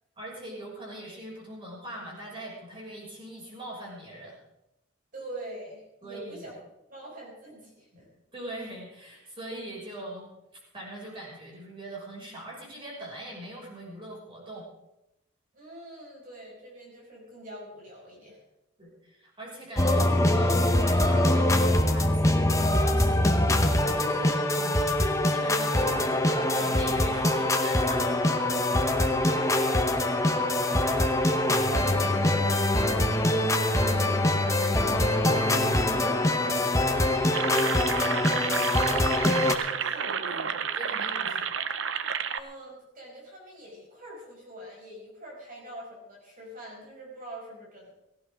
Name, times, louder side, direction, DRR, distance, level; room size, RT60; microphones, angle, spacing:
voice 1, 0.2-4.4 6.0-6.5 8.3-10.3 10.7-14.7 18.8-28.2 40.7-41.5, right 1 dB, 25° right, -3 dB, 6.2 m, -41 dB
voice 2, 5.1-6.6 6.9-8.1 15.5-18.4 25.7-25.9 28.5-28.8 29.3-30.2 30.6-38.1 38.9-40.6 42.3-47.9, right 1 dB, 45° right, -3 dB, 5.4 m, -43 dB
sound 1, 19.8-39.6, left 1 dB, 15° left, 1.0 m, -24 dB
sound 2, 37.3-42.4, right 7 dB, 65° right, 0.7 m, -31 dB
17.5 x 15.5 x 3.7 m, 0.89 s
head